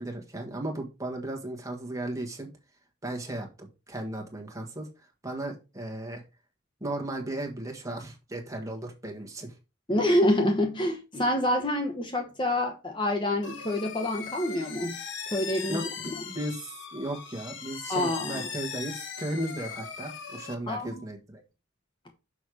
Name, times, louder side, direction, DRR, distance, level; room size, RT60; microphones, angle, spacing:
voice 1, 0.0-2.5 3.0-4.9 5.2-6.2 6.8-9.5 15.7-21.4, right 1 dB, 15° right, 1.5 m, -35 dB
voice 2, 9.9-14.9 15.3-15.8 17.9-18.5 20.7-21.0, left 1 dB, 25° left, 0.9 m, -27 dB
sound 1, 13.4-20.5, left 6 dB, 65° left, 1.1 m, -39 dB
6.3 x 5.6 x 4.9 m
head